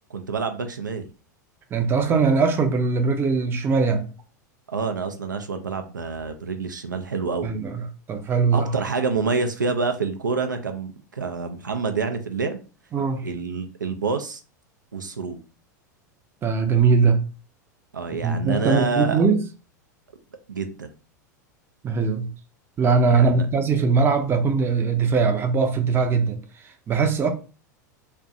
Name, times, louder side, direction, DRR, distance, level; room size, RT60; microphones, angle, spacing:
voice 1, 0.1-1.1 4.7-7.5 8.5-12.6 13.2-14.4 14.9-15.4 17.9-19.2 20.5-20.9 23.1-23.5, right 4 dB, 85° right, 0.4 m, -27 dB
voice 2, 1.7-4.1 7.4-8.7 12.9-13.3 16.4-17.2 18.2-19.4 21.8-22.3 22.8-26.4 26.9-27.3, right 5 dB, 25° right, 0.5 m, -21 dB
2.5 x 2.1 x 2.6 m
figure-of-eight pair, 90°, 10 cm